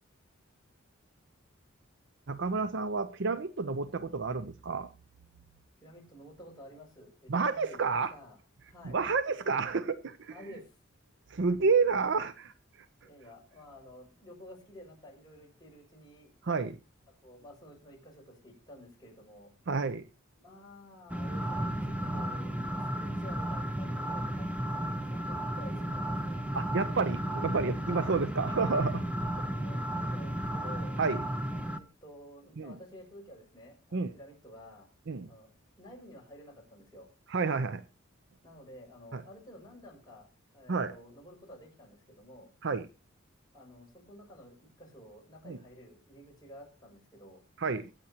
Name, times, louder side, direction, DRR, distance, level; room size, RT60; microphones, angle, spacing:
voice 1, 2.3-4.9 7.3-8.1 8.8-10.3 11.3-12.5 16.4-16.8 19.7-20.0 26.5-29.0 31.0-31.2 32.6-32.7 33.9-34.1 35.1-35.3 37.3-37.8 39.1-39.2 40.7-40.9 42.6-42.9 45.5-45.6 47.6-47.9, right 4 dB, 60° right, 0.7 m, -30 dB
voice 2, 5.8-9.0 10.3-10.8 13.0-16.3 17.2-19.5 20.4-26.5 27.8-28.1 29.4-31.0 31.5-34.9 35.3-35.5 35.8-37.1 38.4-40.3 40.5-42.5 43.5-47.4, equal, 20° left, 6.5 m, -51 dB
sound 1, 21.1-31.8, right 1 dB, 5° right, 0.8 m, -34 dB
23.0 x 8.8 x 2.9 m
head